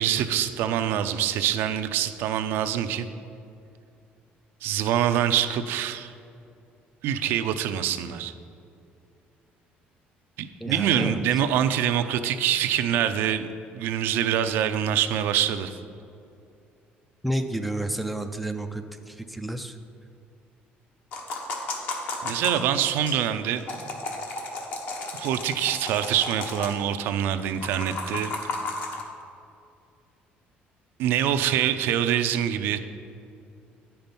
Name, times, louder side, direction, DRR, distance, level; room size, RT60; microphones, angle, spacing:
voice 1, 0.0-3.1 4.6-6.1 7.0-8.3 10.4-13.5 13.7-15.8 22.2-23.6 25.1-28.3 31.0-32.8, right 10 dB, 75° right, 9 dB, 0.5 m, -25 dB
voice 2, 10.6-11.2 17.2-19.8, right 1 dB, ahead, 6 dB, 0.4 m, -30 dB
sound 1, 21.1-23.2 23.6-26.8 27.6-29.0, left 3 dB, 50° left, 1.1 m, -33 dB
9.6 x 5.7 x 5.3 m, 2.5 s
cardioid pair, 165°, 4 cm